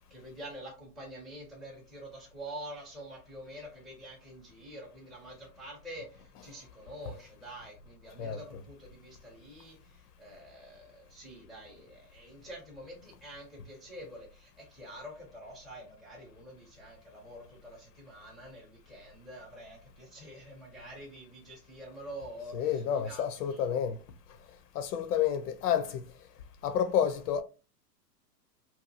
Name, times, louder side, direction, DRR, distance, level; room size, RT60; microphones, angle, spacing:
voice 1, 0.1-23.9, right 1 dB, ahead, 0.4 m, -47 dB
voice 2, 22.5-24.0 24.7-26.0 26.6-27.4, left 8 dB, 65° left, 0.5 m, -29 dB
2.7 x 2.3 x 2.6 m
hypercardioid pair, 115°, 50 cm